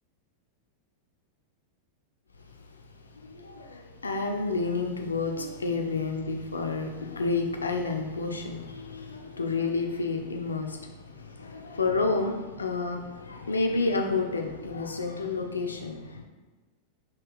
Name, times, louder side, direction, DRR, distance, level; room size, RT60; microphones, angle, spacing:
voice 1, 3.1-16.3, left 3 dB, 75° left, 0.4 m, -30 dB
5.1 x 2.9 x 3.3 m
figure-of-eight pair, 90°, 0 cm